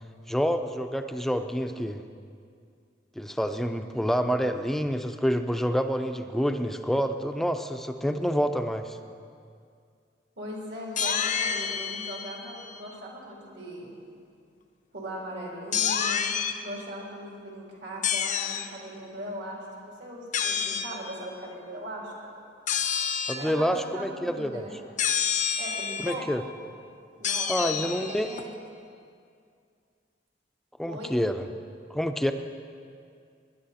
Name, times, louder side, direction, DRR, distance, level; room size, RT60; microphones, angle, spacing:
voice 1, 0.3-2.0 3.2-9.0 23.3-24.7 26.0-26.4 27.5-28.3 30.8-31.5 31.9-32.3, equal, ahead, 7 dB, 0.5 m, -27 dB
voice 2, 10.4-13.9 14.9-16.3 16.6-22.1 23.3-24.8 25.6-26.3 27.1-28.5 30.9-31.1, equal, 70° right, -3 dB, 3.3 m, -39 dB
sound 1, 11.0-12.9 15.7-16.6 18.0-18.7 20.3-20.9 22.7-23.5 25.0-26.1 27.2-28.4, left 7 dB, 45° left, 0.6 m, -28 dB
19.5 x 10.5 x 4.3 m, 2.3 s
head